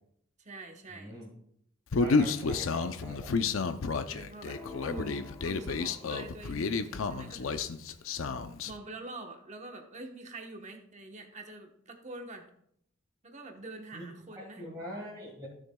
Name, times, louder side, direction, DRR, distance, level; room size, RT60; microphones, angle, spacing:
voice 1, 0.4-1.1 4.1-7.6 8.7-12.5 13.2-14.6, right 2 dB, 35° right, 4 dB, 1.1 m, -45 dB
voice 2, 0.9-1.3 2.0-3.3 13.9-14.0 14.4-15.5, equal, 20° right, -7 dB, 1.9 m, -43 dB
Human voice, 1.9-8.7, left 4 dB, 75° left, 0.5 m, -31 dB
sound 1, 4.5-6.5, left 2 dB, 15° left, 0.8 m, -49 dB
15.5 x 6.4 x 2.3 m, 0.72 s
head